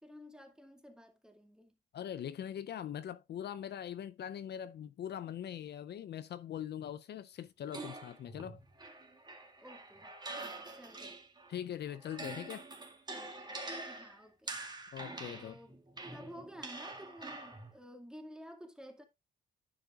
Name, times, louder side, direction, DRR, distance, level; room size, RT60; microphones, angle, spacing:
voice 1, 0.0-1.8 9.6-11.2 13.9-14.6 15.3-15.8 16.1-19.0, equal, 5° right, 2.2 m, -52 dB
voice 2, 1.9-8.6 11.5-12.7 14.9-15.6, left 10 dB, 60° left, 0.6 m, -42 dB
sound 1, 7.7-11.5 11.9-17.7, right 2 dB, 20° right, 2.1 m, -46 dB
10.5 x 7.3 x 2.4 m
cardioid pair, 90°, 20 cm